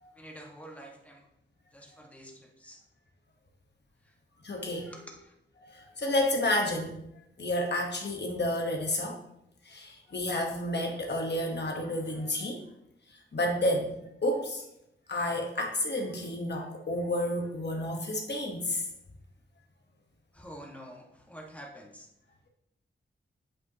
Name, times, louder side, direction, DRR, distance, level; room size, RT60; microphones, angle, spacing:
voice 1, 0.1-1.3 1.7-2.8 4.0-4.1 4.8-5.3 20.3-22.1, equal, 5° left, -1 dB, 1.7 m, -48 dB
voice 2, 4.4-4.9 5.6-7.0 7.4-9.2 9.6-12.6 13.1-14.6 15.1-18.8, left 1 dB, 60° left, 1 dB, 1.4 m, -30 dB
8.4 x 8.2 x 3.0 m, 0.80 s
wide cardioid pair, 100°, 20 cm